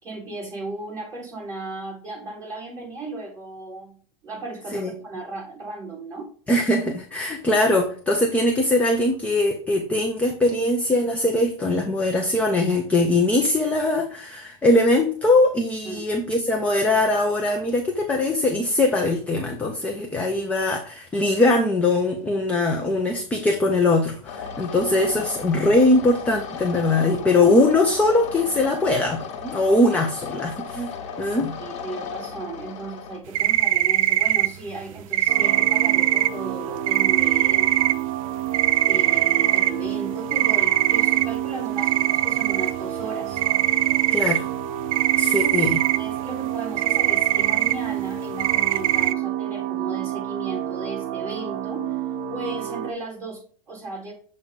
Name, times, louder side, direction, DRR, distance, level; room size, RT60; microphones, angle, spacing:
voice 1, 0.0-4.0 4.2-6.3 15.8-16.0 31.2-31.3 31.6-37.9 38.9-43.4 45.4-52.0 52.3-54.1, right 3 dB, 20° right, -4 dB, 3.0 m, -35 dB
voice 2, 6.5-31.6 44.1-44.5 45.2-45.8, left 2 dB, 10° left, 1 dB, 0.5 m, -21 dB
sound 1, 24.2-33.2, left 6 dB, 60° left, 1.3 m, -35 dB
sound 2, 33.3-34.5 35.1-36.3 36.9-37.9 38.5-39.7 40.3-41.2 41.8-42.7 43.0-43.1 43.3-44.4 44.9-46.0 46.8-47.7 48.4-49.1, right 14 dB, 90° right, 0.4 m, -21 dB
sound 3, 35.3-52.9, right 11 dB, 45° right, 0.6 m, -29 dB
7.2 x 2.6 x 5.3 m, 0.43 s
supercardioid pair, 165°, 17 cm